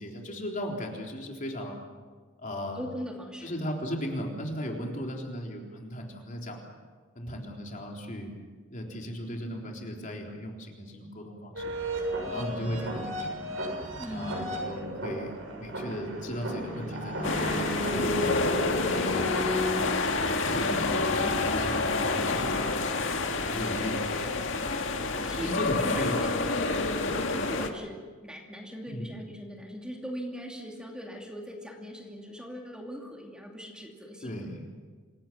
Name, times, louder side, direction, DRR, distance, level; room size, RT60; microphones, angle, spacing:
voice 1, 0.0-1.8 2.4-2.9 3.4-6.7 7.2-8.3 8.7-11.7 12.3-13.4 14.1-19.7 20.4-22.9 23.3-24.6 25.3-26.2 28.9-29.1 34.2-34.6, equal, 45° left, 0 dB, 3.8 m, -37 dB
voice 2, 2.7-3.5 14.0-14.9 17.1-17.3 25.2-34.4, equal, 5° right, 0 dB, 2.6 m, -41 dB
sound 1, 11.6-22.5, equal, 85° right, 6.9 m, -35 dB
sound 2, 17.2-27.7, left 3 dB, 70° left, 1.9 m, -28 dB
27.0 x 18.0 x 7.7 m, 1.5 s
head